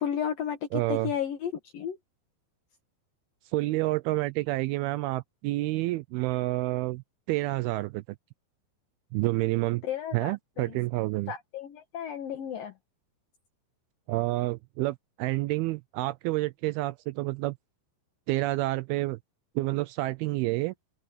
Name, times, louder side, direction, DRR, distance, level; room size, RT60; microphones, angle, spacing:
voice 1, 0.0-2.0 9.8-10.8 11.3-12.7, left 8 dB, 60° left, 3.2 m, -33 dB
voice 2, 0.7-1.1 3.5-7.0 7.3-8.0 9.1-9.8 10.1-11.3 14.1-17.6 18.3-19.2 19.6-20.7, right 19 dB, 85° right, 2.2 m, -29 dB
open air
omnidirectional pair, 4.9 m